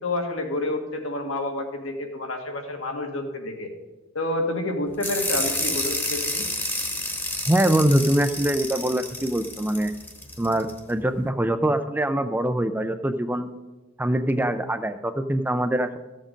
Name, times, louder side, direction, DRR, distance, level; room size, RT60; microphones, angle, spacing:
voice 1, 0.0-3.7 4.2-6.5, left 2 dB, 70° left, 3 dB, 1.8 m, -29 dB
sound 1, 5.0-10.8, left 2 dB, 10° left, 1.1 m, -29 dB
voice 2, 7.5-9.9 10.4-13.5 14.0-16.0, right 1 dB, 10° right, 9 dB, 0.4 m, -23 dB
14.0 x 7.4 x 5.1 m, 1.1 s
head